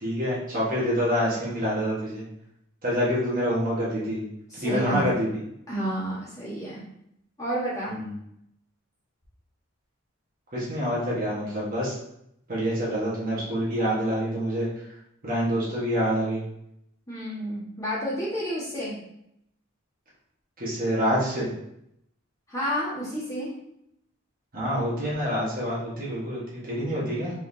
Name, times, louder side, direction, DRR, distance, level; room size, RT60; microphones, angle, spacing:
voice 1, 0.0-2.2 2.8-4.2 4.6-5.3 7.9-8.1 10.5-11.9 12.5-14.7 15.2-16.4 20.6-21.5 24.5-27.3, equal, 45° right, -7 dB, 1.3 m, -26 dB
voice 2, 4.5-5.1 5.7-6.8 7.4-8.0 17.1-19.0 22.5-23.6, equal, 15° left, -10 dB, 1.5 m, -30 dB
4.4 x 3.6 x 2.7 m, 0.77 s
head